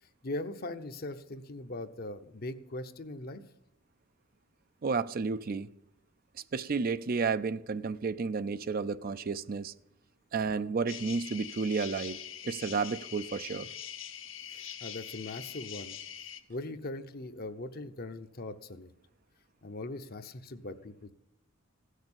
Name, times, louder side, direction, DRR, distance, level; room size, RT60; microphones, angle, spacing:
voice 1, 0.2-3.4 14.5-16.0 16.5-18.9 19.6-21.1, left 2 dB, 45° left, 0.8 m, -40 dB
voice 2, 4.8-5.7 6.5-9.7 10.3-12.2 12.4-13.7, right 4 dB, 45° right, 0.4 m, -31 dB
sound 1, 10.9-16.4, left 9 dB, 65° left, 1.1 m, -43 dB
16.0 x 6.5 x 8.7 m
head